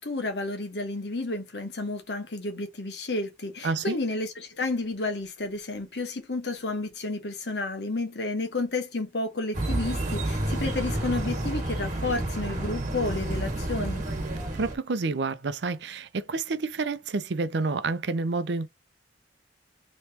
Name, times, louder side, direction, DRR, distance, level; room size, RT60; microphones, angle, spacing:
voice 1, 0.0-14.0, left 2 dB, 65° left, 1.1 m, -31 dB
voice 2, 3.6-4.0 14.6-18.7, right 3 dB, 70° right, 0.5 m, -29 dB
sound 1, 9.5-14.7, right 1 dB, 45° right, 1.3 m, -30 dB
3.2 x 3.1 x 2.8 m
head